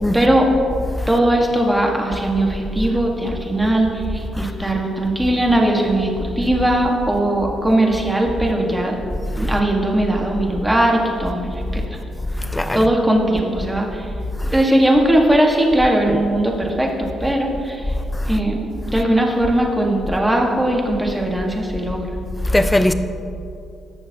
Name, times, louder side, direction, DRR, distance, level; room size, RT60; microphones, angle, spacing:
voice 1, 0.1-0.6 1.1-9.0 9.4-11.8 12.7-14.1 14.4-17.9 18.3-22.1, right 1 dB, 10° right, 1.4 m, -19 dB
voice 2, 12.4-12.9 16.1-16.2 18.2-18.3 22.4-22.9, left 1 dB, 10° left, 0.5 m, -20 dB
17.0 x 6.9 x 2.8 m
cardioid pair, 110°, 0 cm